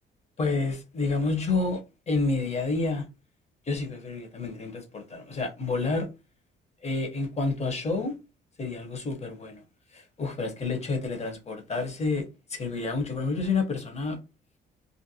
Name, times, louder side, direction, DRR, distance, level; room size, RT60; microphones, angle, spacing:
voice 1, 0.4-1.8 2.1-3.1 3.7-6.1 6.8-8.1 8.6-9.6 9.9-14.2, left 3 dB, 35° left, 0.9 m, -29 dB
2.6 x 2.1 x 2.7 m
cardioid pair, 90°, 20 cm